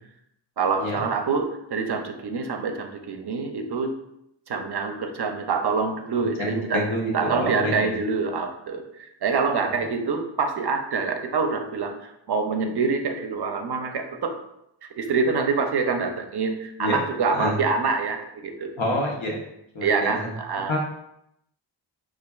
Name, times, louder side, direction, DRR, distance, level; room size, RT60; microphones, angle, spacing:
voice 1, 0.6-3.9 4.5-6.8 7.1-14.4 15.0-18.7 19.8-20.8, right 4 dB, 60° right, 5 dB, 0.5 m, -26 dB
voice 2, 6.1-7.9 9.6-9.7 16.8-17.0 17.3-17.6 18.8-19.4 19.7-20.3 20.7-20.8, left 1 dB, 85° left, 0 dB, 0.9 m, -28 dB
5.3 x 2.4 x 2.3 m, 0.79 s
wide cardioid pair, 100°, 46 cm